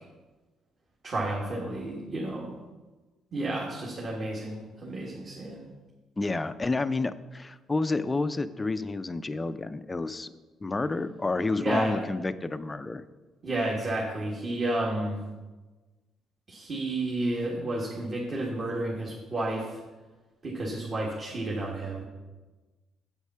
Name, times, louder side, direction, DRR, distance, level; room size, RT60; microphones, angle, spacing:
voice 1, 1.0-2.5 3.3-5.6 11.5-11.9 13.4-15.2 16.5-19.8 20.4-22.0, right 2 dB, 35° right, -3 dB, 1.8 m, -31 dB
voice 2, 6.2-10.3 10.6-13.0, left 3 dB, 20° left, 12 dB, 0.5 m, -29 dB
8.2 x 8.1 x 5.6 m, 1.2 s
cardioid pair, 120°, 0 cm